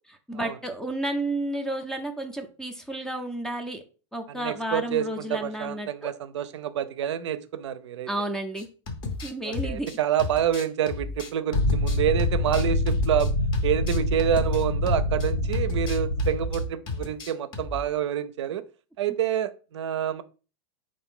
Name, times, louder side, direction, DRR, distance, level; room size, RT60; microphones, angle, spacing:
voice 1, 0.1-3.8 4.1-6.1 8.1-8.7 9.2-9.9, right 1 dB, 5° left, 6 dB, 0.4 m, -31 dB
voice 2, 4.3-8.1 9.4-13.3 13.6-18.6 19.0-20.2, right 10 dB, 90° right, 13 dB, 0.4 m, -28 dB
sound 1, 8.6-15.3 15.5-16.6 16.9-17.8, left 3 dB, 30° left, 0.7 m, -34 dB
sound 2, 11.5-16.7, left 1 dB, 70° left, 0.8 m, -26 dB
3.8 x 2.5 x 3.6 m, 0.36 s
hypercardioid pair, 125°, 15 cm